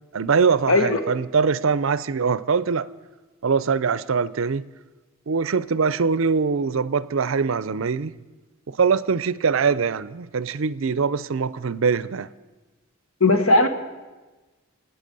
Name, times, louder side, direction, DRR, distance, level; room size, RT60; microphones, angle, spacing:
voice 1, 0.1-2.9 3.4-4.7 5.3-8.1 8.7-12.3, right 5 dB, 65° right, 0.5 m, -22 dB
voice 2, 0.7-1.0 13.2-13.7, left 2 dB, 75° left, 1.5 m, -17 dB
26.0 x 9.2 x 5.4 m
head